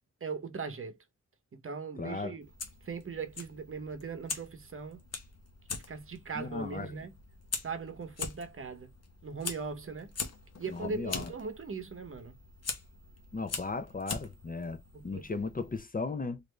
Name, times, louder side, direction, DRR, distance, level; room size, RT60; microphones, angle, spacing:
voice 1, 0.2-1.0 1.5-2.5 2.8-5.0 5.9-7.1 7.6-8.9 9.2-10.1 10.6-12.4 14.9-15.3, right 5 dB, 45° right, 0.8 m, -39 dB
voice 2, 2.0-2.4 6.3-7.0 10.7-11.3 13.3-16.4, left 3 dB, 30° left, 0.5 m, -36 dB
Fire, 2.4-15.8, left 4 dB, 60° left, 0.9 m, -43 dB
3.2 x 2.6 x 3.1 m
wide cardioid pair, 75°, 29 cm